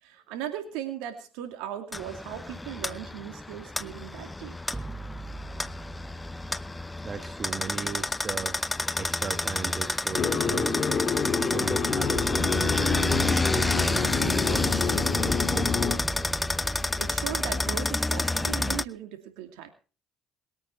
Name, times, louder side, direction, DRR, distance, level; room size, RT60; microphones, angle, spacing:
voice 1, 0.0-4.9 16.8-19.7, right 10 dB, 80° right, 6 dB, 2.6 m, -38 dB
sound 1, 1.9-18.8, left 2 dB, 15° left, 0.6 m, -29 dB
sound 2, 4.7-9.7 12.1-16.9, right 3 dB, 20° right, 1.6 m, -40 dB
voice 2, 7.0-8.6 9.0-10.7 11.5-16.0, right 5 dB, 40° right, 7 dB, 1.5 m, -37 dB
sound 3, 10.1-16.0, left 5 dB, 45° left, 2.3 m, -28 dB
21.0 x 9.1 x 4.5 m, 0.37 s
hypercardioid pair, 55°, 0 cm